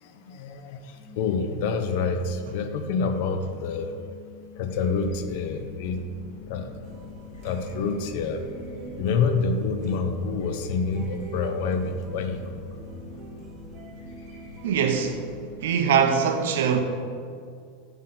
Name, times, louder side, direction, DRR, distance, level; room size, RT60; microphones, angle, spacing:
voice 1, 0.0-3.9 4.6-6.0 6.5-6.7 7.4-8.4 9.0-12.6, left 5 dB, 50° left, 0.5 m, -27 dB
sound 1, 0.9-15.6, left 10 dB, ahead, 1.3 m, -48 dB
sound 2, 4.7-15.6, left 1 dB, 75° left, 1.8 m, -46 dB
sound 3, 6.8-14.7, right 6 dB, 30° right, 0.6 m, -43 dB
voice 2, 14.6-15.2 15.6-16.8, right 7 dB, 75° right, 0.7 m, -22 dB
8.1 x 3.9 x 5.8 m
supercardioid pair, 180°, 0 cm